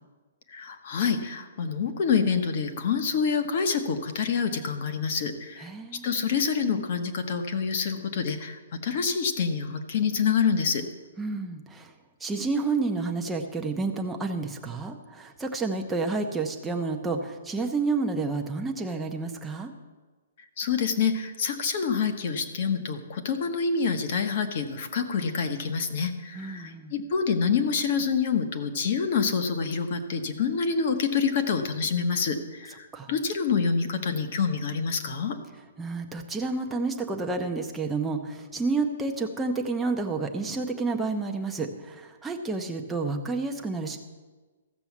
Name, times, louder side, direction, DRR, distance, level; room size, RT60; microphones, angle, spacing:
voice 1, 0.5-5.7 6.0-10.8 20.6-35.4, left 6 dB, 35° left, 7 dB, 1.1 m, -27 dB
voice 2, 5.6-6.0 11.2-11.9 12.2-19.7 26.4-26.9 32.9-33.1 35.8-44.0, right 3 dB, 5° right, 2 dB, 0.7 m, -30 dB
14.5 x 6.9 x 7.2 m, 1.3 s
hypercardioid pair, 175°, 0 cm